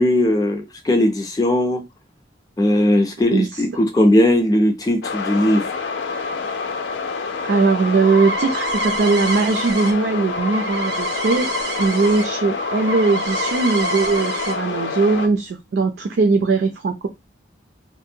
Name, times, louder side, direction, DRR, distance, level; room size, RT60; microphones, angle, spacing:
voice 1, 0.0-1.8 2.6-5.7, left 1 dB, 20° left, 5 dB, 0.4 m, -18 dB
voice 2, 3.3-3.6 7.4-11.5 11.8-17.1, right 4 dB, 65° right, 5 dB, 0.3 m, -19 dB
sound 1, 5.0-15.3, left 4 dB, 85° left, 0.5 m, -27 dB
sound 2, 7.9-12.2 12.5-14.5, right 1 dB, 85° right, 0.7 m, -28 dB
2.5 x 2.1 x 2.7 m, 0.21 s
head